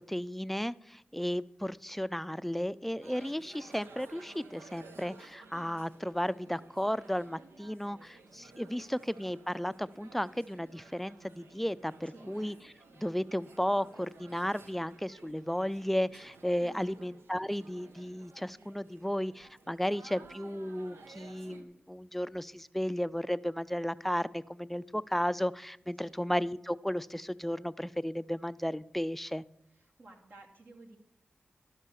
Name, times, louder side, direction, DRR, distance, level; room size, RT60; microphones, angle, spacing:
voice 1, 0.0-12.6 12.9-29.4, equal, 5° left, 17 dB, 0.4 m, -34 dB
sound 1, 3.0-21.6, right 3 dB, 85° right, 0.8 m, -55 dB
voice 2, 16.6-17.0 26.0-26.1 29.7-31.0, right 2 dB, 60° right, 0 dB, 2.2 m, -54 dB
12.0 x 5.5 x 6.8 m, 0.77 s
cardioid pair, 40°, 4 cm